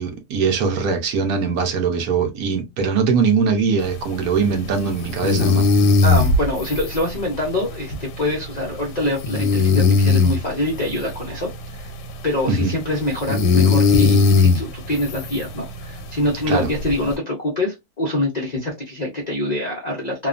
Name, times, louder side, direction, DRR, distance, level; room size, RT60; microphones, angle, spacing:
voice 1, 0.0-5.7 12.5-12.7 16.5-16.7, right 5 dB, 70° right, 1.1 m, -21 dB
sound 1, 3.8-17.2, left 3 dB, 85° left, 1.2 m, -20 dB
voice 2, 6.0-11.9 12.2-20.3, left 1 dB, 70° left, 0.4 m, -25 dB
2.8 x 2.2 x 2.4 m
omnidirectional pair, 1.8 m